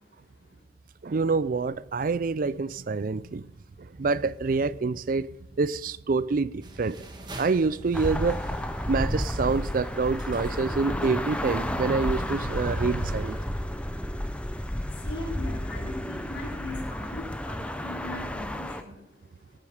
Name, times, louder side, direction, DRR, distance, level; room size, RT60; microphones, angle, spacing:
voice 1, 1.0-3.5 3.8-5.3 5.6-7.0 7.4-8.4 8.9-13.4, right 4 dB, 50° right, 0.4 m, -27 dB
sound 1, 1.3-15.1, equal, 40° left, 4.0 m, -59 dB
sound 2, 6.6-13.5, right 1 dB, 25° right, 1.5 m, -46 dB
sound 3, 7.9-18.8, left 1 dB, 5° left, 0.6 m, -32 dB
voice 2, 15.0-18.9, left 2 dB, 80° left, 3.6 m, -39 dB
17.0 x 8.5 x 5.0 m
head